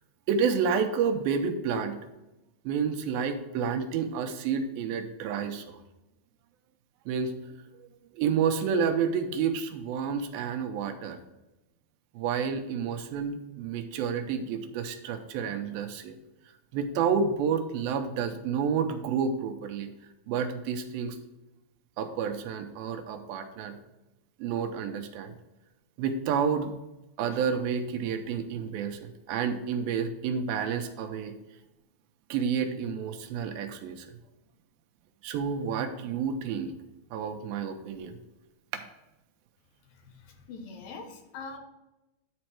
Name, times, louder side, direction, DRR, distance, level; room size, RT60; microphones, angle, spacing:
voice 1, 0.3-2.0 2.7-5.8 7.1-7.3 7.8-7.9 8.1-11.2 12.1-16.2 16.7-19.9 20.3-21.2 22.0-23.8 24.4-25.3 26.0-26.7 27.2-31.3 32.3-34.1 35.2-36.7 37.1-38.2 38.7-38.8, right 6 dB, 85° right, 6 dB, 2.5 m, -30 dB
voice 2, 39.9-41.6, left 4 dB, 75° left, 4 dB, 2.7 m, -43 dB
10.5 x 4.3 x 4.6 m, 0.97 s
omnidirectional pair, 4.3 m